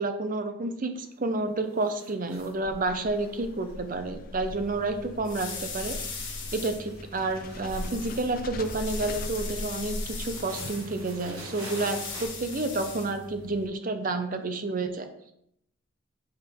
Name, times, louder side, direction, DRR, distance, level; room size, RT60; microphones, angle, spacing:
voice 1, 0.0-5.9 6.5-15.1, right 2 dB, 40° right, 7 dB, 0.6 m, -30 dB
sound 1, 0.9-1.3 1.6-2.6 3.0-5.2 5.5-5.9 6.2-12.3, right 2 dB, 75° right, 1.6 m, -47 dB
sound 2, 2.4-10.6, left 1 dB, 40° left, 0.4 m, -40 dB
sound 3, 4.5-13.7, left 4 dB, 60° left, 1.7 m, -40 dB
7.8 x 3.6 x 3.5 m, 0.74 s
head